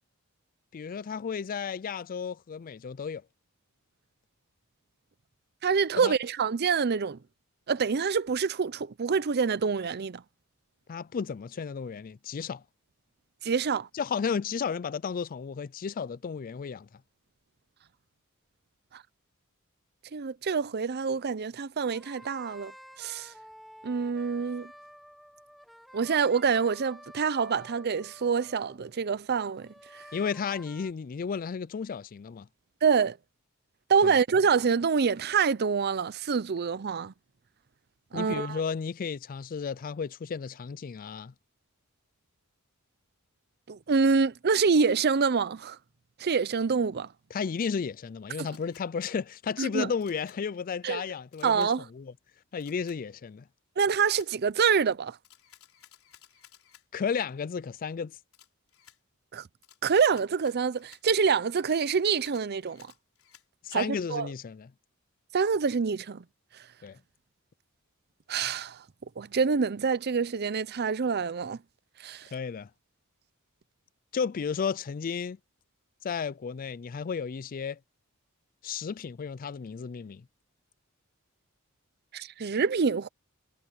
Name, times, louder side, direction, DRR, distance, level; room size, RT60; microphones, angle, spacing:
voice 1, 0.7-3.2 6.0-6.1 10.9-12.6 13.9-16.9 30.1-32.5 34.0-34.2 38.1-41.3 47.3-51.7 51.9-52.1 52.5-53.4 56.9-58.2 63.6-64.7 66.8-67.0 72.3-72.7 74.1-75.4 76.0-77.8 78.6-80.2, left 6 dB, 40° left, 0.4 m, -33 dB
voice 2, 5.6-7.2 7.7-10.2 13.4-13.9 18.9-19.0 20.1-22.7 23.0-23.3 23.8-24.7 25.9-30.0 32.8-33.2 33.9-37.1 38.1-38.6 43.7-45.8 46.2-47.1 49.6-49.9 50.8-51.0 51.4-51.8 53.8-55.2 59.3-59.4 59.8-62.9 63.7-64.3 65.3-66.2 68.3-68.8 69.2-71.6 72.0-72.3 82.1-83.1, right 5 dB, 50° right, 0.6 m, -26 dB
sound 1, 21.8-28.9 29.6-30.9, equal, ahead, 1.9 m, -51 dB
Camera, 48.5-48.9 50.0-50.4 51.3-51.7 52.6-53.0 53.9-54.3 55.2-56.8 58.3-59.0 59.6-63.5, left 11 dB, 70° left, 5.3 m, -57 dB
head